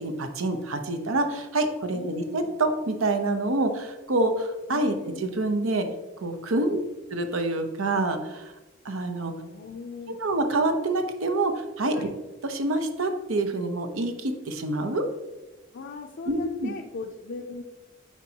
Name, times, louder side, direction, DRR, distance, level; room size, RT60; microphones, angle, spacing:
voice 1, 0.0-5.9 6.2-6.8 7.1-8.5 8.8-9.3 10.2-12.1 12.4-15.0 16.3-16.7, right 2 dB, 90° right, 6 dB, 0.7 m, -27 dB
voice 2, 1.9-2.5 4.7-5.3 6.7-6.8 9.4-10.2 11.9-12.1 15.7-17.6, left 4 dB, 60° left, 1 dB, 0.4 m, -39 dB
8.1 x 4.6 x 2.8 m, 1.1 s
head